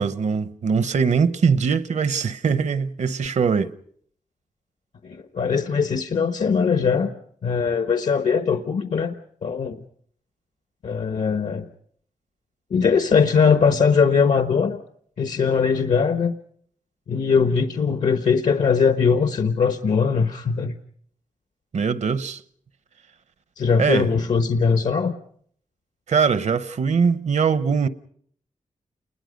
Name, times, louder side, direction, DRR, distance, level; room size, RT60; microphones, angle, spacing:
voice 1, 0.0-3.7 21.7-22.4 23.8-24.1 26.1-27.9, right 5 dB, 65° right, 0.9 m, -21 dB
voice 2, 5.0-7.1 7.4-9.1 9.4-9.8 10.8-11.7 12.7-14.8 15.2-16.3 17.1-20.7 23.6-25.1, left 5 dB, 70° left, 1.2 m, -20 dB
28.5 x 21.0 x 5.2 m
wide cardioid pair, 125°, 13 cm